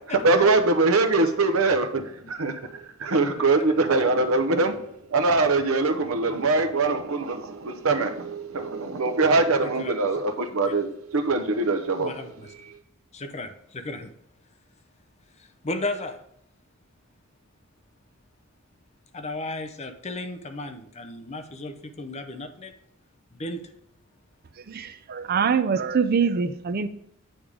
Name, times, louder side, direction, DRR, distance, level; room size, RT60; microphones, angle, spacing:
voice 1, 0.1-4.8 5.1-12.1, right 3 dB, 75° right, 8 dB, 0.8 m, -23 dB
voice 2, 3.2-3.5 9.6-9.9 10.6-10.7 12.0-12.5 13.1-14.1 15.6-16.2 19.1-22.7 23.3-23.6, left 2 dB, 30° left, 7 dB, 0.6 m, -34 dB
voice 3, 24.7-26.9, right 6 dB, 45° right, 11 dB, 0.4 m, -24 dB
8.8 x 3.5 x 4.9 m, 0.75 s
head